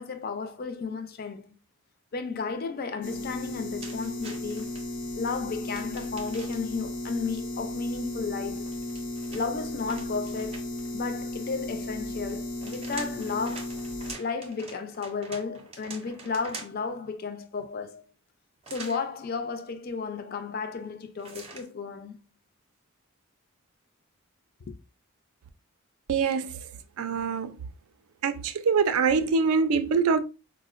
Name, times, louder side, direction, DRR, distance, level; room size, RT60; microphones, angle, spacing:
voice 1, 0.0-1.6 2.1-4.8 5.2-8.7 9.3-13.7 14.2-18.0 18.7-22.2 24.7-24.8, left 5 dB, 45° left, 0.4 m, -33 dB
sound 1, 3.0-14.1, left 1 dB, 85° left, 0.6 m, -35 dB
sound 2, 3.8-4.8 5.7-6.8 8.6-10.9 12.3-16.9 18.6-19.0 21.2-21.7, right 3 dB, 25° right, 0.5 m, -45 dB
voice 2, 26.1-26.6 27.0-27.6 28.2-30.2, right 5 dB, 75° right, 0.4 m, -24 dB
4.3 x 2.0 x 2.4 m
head